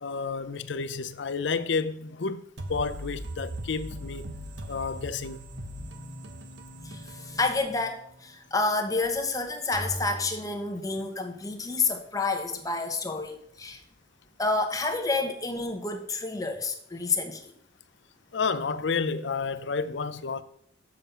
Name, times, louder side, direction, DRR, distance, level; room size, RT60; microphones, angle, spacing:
voice 1, 0.0-2.4 2.7-4.4 4.7-5.4 18.3-20.4, left 5 dB, 70° left, 0.6 m, -30 dB
sound 1, 2.6-8.2, equal, 65° right, 1.1 m, -40 dB
voice 2, 6.8-13.8 14.4-17.5, left 3 dB, 20° left, 1.0 m, -29 dB
sound 2, 9.7-11.7, right 1 dB, 10° right, 1.0 m, -40 dB
7.4 x 7.3 x 5.5 m
head